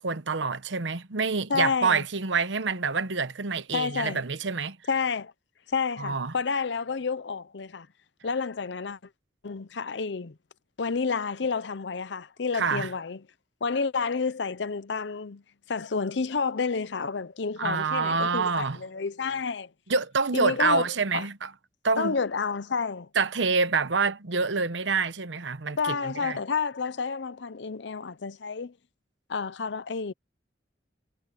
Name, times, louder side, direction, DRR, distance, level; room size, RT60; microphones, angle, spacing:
voice 1, 0.0-4.8 6.0-6.3 12.5-12.9 17.6-18.8 19.9-21.5 21.8-22.2 23.1-26.4, right 4 dB, 85° right, 1.0 m, -27 dB
voice 2, 1.5-2.1 3.7-4.2 4.9-5.3 5.7-7.9 8.2-9.0 9.4-10.3 10.8-13.2 13.6-15.4 15.7-19.7 20.3-20.9 21.1-21.2 22.0-23.1 25.8-28.7 29.3-30.1, left 5 dB, 75° left, 0.7 m, -30 dB
head